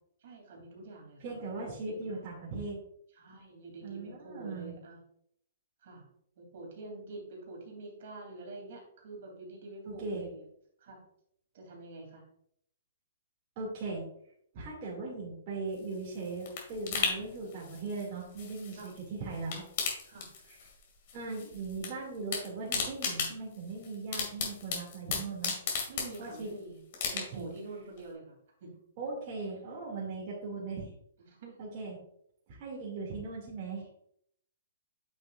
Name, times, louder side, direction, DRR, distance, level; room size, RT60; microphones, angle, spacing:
voice 1, 0.2-1.7 2.0-2.3 3.1-5.0 5.8-6.1 6.4-10.5 10.8-11.0 11.5-12.2 14.6-14.7 18.7-18.9 20.0-20.3 25.9-26.8 27.1-28.7 31.2-31.6, right 2 dB, 55° right, -1 dB, 3.0 m, -47 dB
voice 2, 1.2-2.8 3.8-4.7 9.8-10.3 13.6-14.0 14.5-19.6 20.5-20.6 21.1-25.5 26.2-26.5 27.1-27.5 29.0-30.9 31.6-32.0 32.5-34.0, right 3 dB, 35° right, -5 dB, 2.4 m, -39 dB
sound 1, 15.7-19.0 19.3-20.8 21.1-21.9 22.1-26.5 26.9-27.6 28.0-28.1, left 6 dB, 45° left, 2.4 m, -36 dB
8.7 x 6.4 x 2.5 m, 0.69 s
hypercardioid pair, 160°, 0 cm